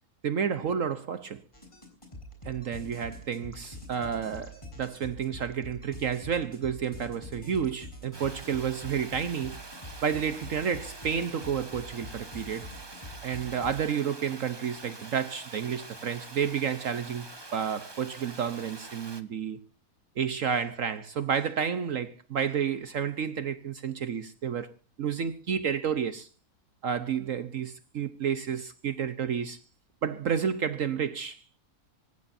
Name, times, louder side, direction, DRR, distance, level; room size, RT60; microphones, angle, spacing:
voice 1, 0.2-1.4 2.4-9.6 10.0-12.6 13.2-19.6 20.2-24.7 25.0-26.3 26.8-29.6 30.0-31.4, right 7 dB, 60° right, 1.2 m, -30 dB
sound 1, 1.5-13.8, left 1 dB, 20° left, 5.8 m, -45 dB
Water, 8.1-19.2, right 2 dB, 20° right, 1.2 m, -46 dB
26.5 x 15.0 x 2.7 m
omnidirectional pair, 1.6 m